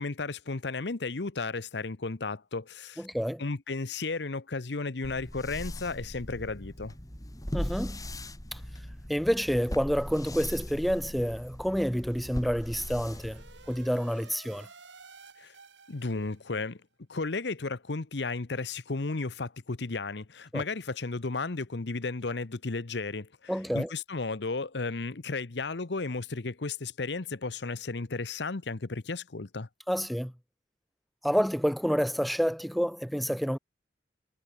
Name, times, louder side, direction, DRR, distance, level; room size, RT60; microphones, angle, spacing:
voice 1, 0.0-3.1 3.4-6.9 15.4-15.5 15.9-16.8 17.1-29.7, left 3 dB, 65° left, 0.9 m, -34 dB
voice 2, 3.0-3.4 7.5-8.0 8.5-8.6 9.1-13.4 13.7-14.7 20.5-20.6 23.5-23.9 29.9-30.3 31.2-33.6, equal, ahead, 0.9 m, -28 dB
sound 1, 5.0-14.0, equal, 20° left, 2.6 m, -39 dB
sound 2, 11.5-16.5, right 4 dB, 85° right, 7.0 m, -54 dB
head